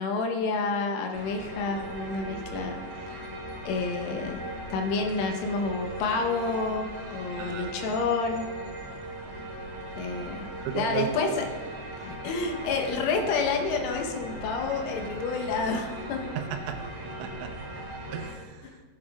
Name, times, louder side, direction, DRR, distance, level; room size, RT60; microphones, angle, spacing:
voice 1, 0.0-3.3 3.7-4.4 4.7-8.5 10.0-10.5 10.8-11.5 12.0-16.2, left 4 dB, 80° left, 2 dB, 3.5 m, -29 dB
sound 1, 1.1-18.3, right 1 dB, 60° right, 2.9 m, -38 dB
voice 2, 7.4-7.8 10.6-11.4 16.4-16.8 17.0-17.5 18.1-18.7, right 8 dB, 85° right, 5 dB, 3.2 m, -34 dB
15.0 x 8.4 x 2.3 m, 1.4 s
omnidirectional pair, 5.8 m